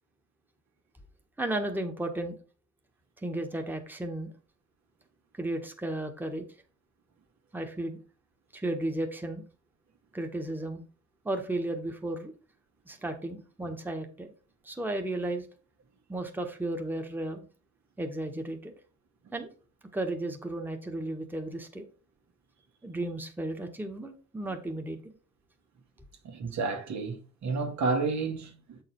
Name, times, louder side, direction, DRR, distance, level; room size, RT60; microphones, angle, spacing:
voice 1, 1.4-2.4 3.2-4.3 5.4-6.5 7.5-8.0 8.5-9.4 10.1-10.8 11.2-12.3 12.9-14.3 14.6-15.5 16.1-17.5 18.0-18.7 19.3-19.5 19.9-21.8 22.8-25.1, right 1 dB, 5° right, 1.3 m, -34 dB
voice 2, 26.2-28.8, right 4 dB, 65° right, 1.8 m, -31 dB
7.7 x 5.0 x 4.4 m
cardioid pair, 90°, 30 cm